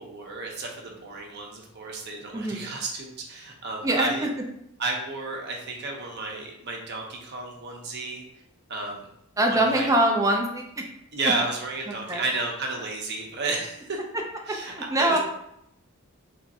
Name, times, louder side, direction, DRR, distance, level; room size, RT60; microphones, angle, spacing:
voice 1, 0.0-4.3 4.8-8.2 8.7-9.1 9.5-9.9 11.1-14.0 14.5-15.2, right 3 dB, 50° right, 0 dB, 0.8 m, -32 dB
voice 2, 2.3-2.7 3.8-4.3 9.4-10.8 12.1-12.2 14.6-15.2, right 1 dB, 15° right, 1 dB, 0.4 m, -23 dB
3.4 x 2.5 x 4.1 m, 0.79 s
head